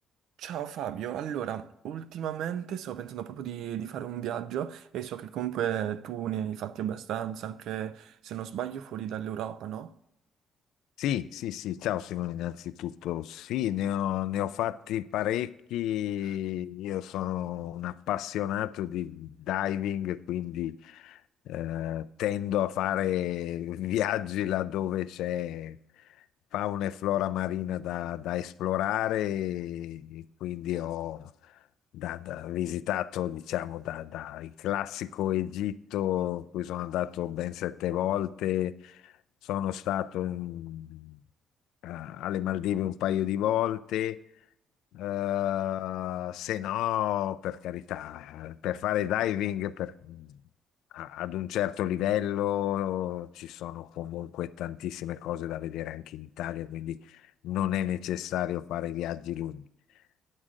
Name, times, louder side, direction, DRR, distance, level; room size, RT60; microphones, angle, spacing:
voice 1, 0.4-9.9, right 10 dB, 80° right, 0.4 m, -34 dB
voice 2, 11.0-21.2 21.5-25.8 26.5-31.3 31.9-39.1 39.4-41.2 41.8-44.2 44.9-50.4 50.9-59.6, left 12 dB, 85° left, 0.3 m, -31 dB
9.8 x 6.3 x 3.7 m
cardioid pair, 90°, 0 cm